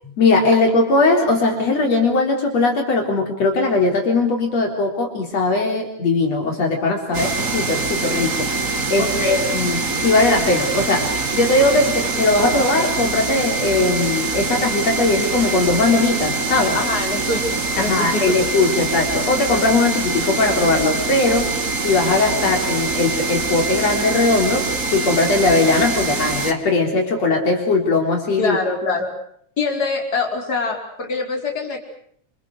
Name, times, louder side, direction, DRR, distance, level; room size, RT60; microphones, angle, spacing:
voice 1, 0.2-8.5 8.9-16.8 17.8-21.5 21.8-28.6, left 3 dB, 60° left, 2 dB, 4.8 m, -19 dB
sound 1, 7.1-26.5, right 3 dB, 30° right, 2.3 m, -24 dB
voice 2, 9.0-9.5 16.7-18.4 28.4-29.1 29.6-31.8, left 3 dB, 30° left, 2 dB, 5.5 m, -24 dB
29.0 x 27.5 x 6.5 m, 0.66 s
omnidirectional pair, 3.3 m